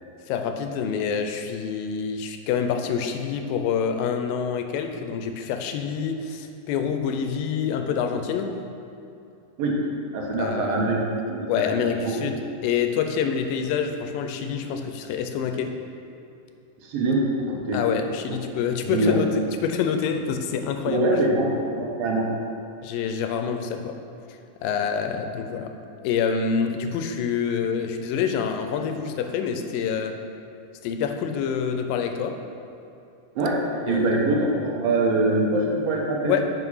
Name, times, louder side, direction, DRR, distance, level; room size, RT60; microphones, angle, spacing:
voice 1, 0.3-8.6 10.4-10.8 11.5-15.7 17.7-21.1 22.8-23.9 24.6-25.7 26.0-30.2 30.8-32.4 33.8-34.1 36.3-36.4, left 7 dB, 90° left, 6 dB, 2.4 m, -26 dB
voice 2, 10.1-11.0 11.3-12.2 16.8-17.8 18.3-18.4 18.8-19.2 20.9-22.3 33.4-36.4, right 2 dB, 85° right, -1 dB, 2.9 m, -24 dB
8.0 x 5.3 x 5.5 m, 2.7 s
omnidirectional pair, 4.0 m